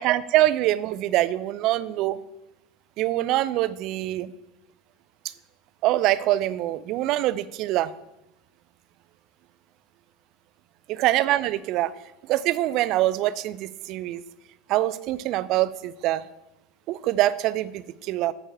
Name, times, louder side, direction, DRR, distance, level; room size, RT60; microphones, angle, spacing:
voice 1, 0.0-2.2 3.0-4.3 5.8-7.9 10.9-11.9 12.2-14.2 14.7-16.2 16.9-18.3, right 15 dB, 50° right, 16 dB, 0.5 m, -24 dB
9.3 x 5.5 x 6.5 m, 0.94 s
figure-of-eight pair, 75°, 0 cm